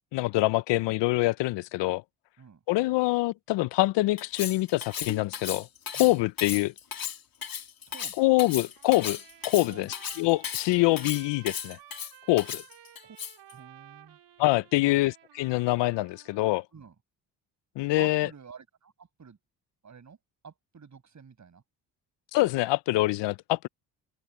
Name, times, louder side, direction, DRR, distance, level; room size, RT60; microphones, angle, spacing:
voice 1, 0.1-2.0 2.7-5.7 6.0-6.7 8.2-9.2 9.4-9.9 10.2-11.8 12.3-12.6 14.4-15.1 15.4-16.6 17.8-18.3 22.3-23.7, left 19 dB, 75° left, 0.8 m, -25 dB
Cutlery silverware, 4.2-13.5, left 8 dB, 50° left, 3.8 m, -36 dB
voice 2, 7.9-8.2 9.6-9.9 13.0-13.2 13.5-14.2 14.8-15.1 16.7-16.9 18.0-19.4 19.8-20.2 20.4-21.6, right 6 dB, 40° right, 6.3 m, -48 dB
Trumpet, 8.8-16.7, right 12 dB, 70° right, 4.6 m, -54 dB
supercardioid pair, 60°, 43 cm